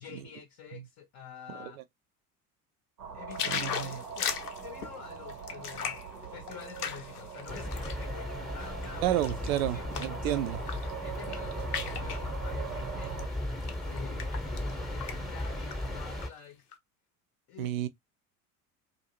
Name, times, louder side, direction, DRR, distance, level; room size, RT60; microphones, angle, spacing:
voice 1, 0.0-1.8 3.1-6.0 6.3-10.5 11.0-13.3 13.8-16.7 17.5-17.7, left 8 dB, 35° left, 0.6 m, -48 dB
sound 1, 3.0-13.3, right 7 dB, 85° right, 0.9 m, -42 dB
sound 2, 3.3-8.0 8.5-10.2 10.6-10.9 11.2-12.2 13.0-13.2 13.6-14.7 15.0-15.2 15.4-16.3 16.7-16.8, left 7 dB, 80° left, 0.6 m, -37 dB
voice 2, 3.5-4.0 9.0-10.6 17.6-17.9, right 12 dB, 65° right, 0.5 m, -31 dB
sound 3, 7.5-16.3, left 1 dB, ahead, 0.8 m, -36 dB
2.6 x 2.5 x 2.7 m
figure-of-eight pair, 65°, 46 cm